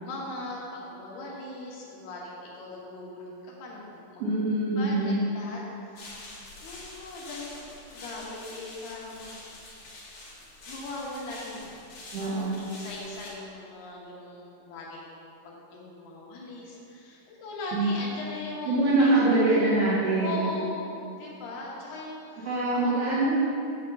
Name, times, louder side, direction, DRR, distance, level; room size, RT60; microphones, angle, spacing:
voice 1, 0.0-4.2 4.8-6.3 6.6-9.5 10.7-11.8 12.1-19.2 20.2-23.0, left 2 dB, 80° left, -3 dB, 3.4 m, -40 dB
voice 2, 4.2-5.2 12.1-12.6 17.7-17.9 18.7-20.5 22.5-23.3, right 2 dB, 50° right, -10 dB, 2.2 m, -24 dB
sound 1, 6.0-13.3, left 2 dB, 60° left, 3.1 m, -45 dB
6.6 x 5.5 x 6.8 m, 2.6 s
omnidirectional pair, 4.5 m